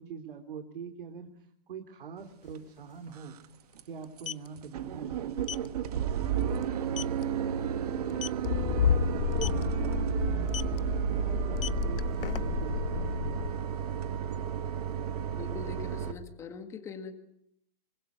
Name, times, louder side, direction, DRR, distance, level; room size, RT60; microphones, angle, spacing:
voice 1, 0.0-3.4 3.8-8.9 9.4-12.0 12.4-13.5, right 6 dB, 60° right, 8 dB, 2.9 m, -44 dB
sound 1, 2.4-2.5 2.8-3.0 4.0-4.5 5.4-5.7 6.1-6.3 6.6-6.7 7.0-7.2 8.1-8.5 9.3-9.6 10.5-10.8 11.4-12.7, left 10 dB, 65° left, 1.0 m, -37 dB
sound 2, 2.5-2.6 3.1-3.5 3.8-3.9 4.2-4.3 4.6-16.1, right 9 dB, 40° right, 1.8 m, -32 dB
sound 3, 8.4-13.5, left 9 dB, 45° left, 2.8 m, -31 dB
voice 2, 15.4-17.1, left 5 dB, 10° left, 7 dB, 1.9 m, -42 dB
25.5 x 24.5 x 9.5 m, 0.72 s
hypercardioid pair, 175°, 29 cm